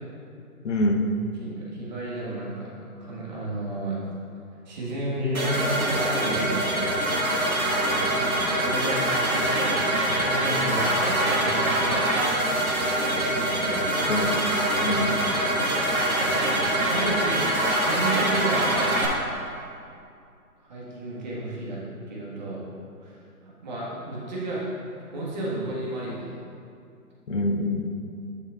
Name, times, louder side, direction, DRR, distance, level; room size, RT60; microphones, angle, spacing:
voice 1, 0.6-1.1 14.0-14.4 14.8-15.3 27.3-27.9, left 1 dB, 55° left, 3 dB, 0.9 m, -25 dB
voice 2, 1.4-2.7 3.0-4.0 4.6-6.9 8.6-12.3 13.4-13.9 15.9-16.4 16.7-17.4 17.8-18.8 20.6-21.8 22.1-22.6 23.0-23.2 23.4-24.7 25.1-26.3, right 1 dB, 30° right, -6 dB, 1.5 m, -32 dB
sound 1, 5.3-19.1, right 1 dB, 65° right, 1.5 m, -24 dB
9.9 x 6.3 x 2.4 m, 2.5 s
figure-of-eight pair, 155°, 46 cm